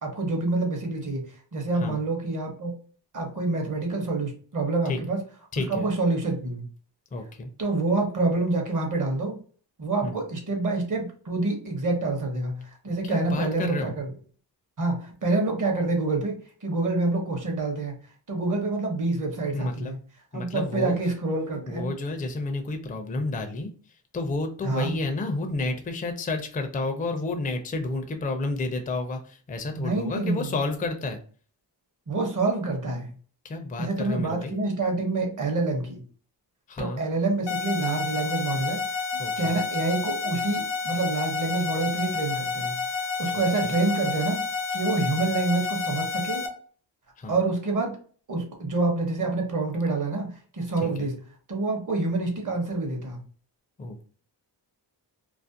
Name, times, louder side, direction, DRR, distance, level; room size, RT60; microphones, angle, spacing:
voice 1, 0.0-1.2 1.5-2.7 3.1-5.2 5.7-6.6 7.6-9.4 9.8-14.1 14.8-17.9 18.3-20.0 20.3-21.9 24.6-24.9 29.7-30.5 32.1-33.1 33.8-36.0 36.8-38.8 39.4-42.8 43.2-44.4 44.7-46.4 47.3-48.0 48.3-51.1 51.5-53.2, right 3 dB, 45° right, 2 dB, 0.8 m, -27 dB
voice 2, 5.5-5.9 7.1-7.5 10.0-10.2 13.0-13.9 19.5-19.9 20.3-21.0 21.7-23.7 24.1-31.2 33.4-34.6 36.7-37.0 39.2-39.5 43.3-43.8 47.2-47.4 50.8-51.1 53.8-54.1, left 2 dB, 20° left, 5 dB, 0.4 m, -31 dB
sound 1, 37.5-46.5, left 5 dB, 80° left, 0.7 m, -30 dB
2.5 x 2.0 x 2.5 m, 0.43 s
cardioid pair, 100°, 43 cm